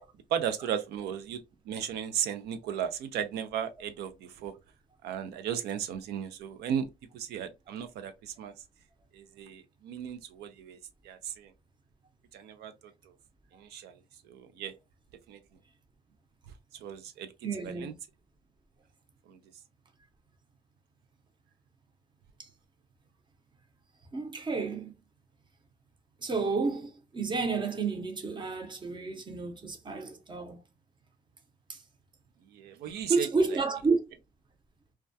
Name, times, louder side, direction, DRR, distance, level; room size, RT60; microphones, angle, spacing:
voice 1, 0.3-1.4 1.7-4.5 5.0-6.9 7.1-8.5 9.1-10.8 11.0-11.5 12.3-12.7 13.5-13.9 14.3-14.7 15.3-15.4 16.8-17.3 17.6-17.9 19.3-19.4 32.5-33.3, right 9 dB, 75° right, 0.4 m, -35 dB
voice 2, 17.4-18.0 22.4-22.5 24.1-24.9 26.2-30.6 31.7-31.8 33.1-34.0, right 4 dB, 25° right, 0.7 m, -31 dB
2.2 x 2.2 x 2.6 m
cardioid pair, 110°, 17 cm